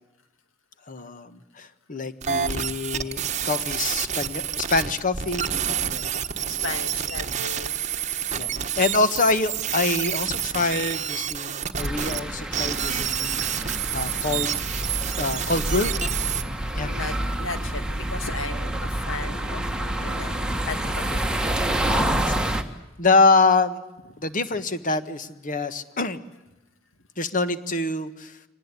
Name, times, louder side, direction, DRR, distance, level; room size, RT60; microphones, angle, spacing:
voice 1, 0.9-6.2 8.1-14.5 15.2-15.9 16.8-16.9 21.1-21.2 21.8-22.6 23.0-23.8 24.2-26.2 27.2-28.4, left 3 dB, 40° left, 12 dB, 1.5 m, -25 dB
sound 1, 2.2-12.2 12.5-16.4, right 8 dB, 35° right, 1.2 m, -28 dB
voice 2, 6.5-7.8 15.7-15.9 16.7-17.8 18.1-18.7 19.1-21.1, left 3 dB, 80° left, 8 dB, 2.7 m, -35 dB
sound 2, 11.8-22.6, right 1 dB, 5° right, 1.6 m, -28 dB
24.5 x 19.5 x 10.0 m, 1.0 s
head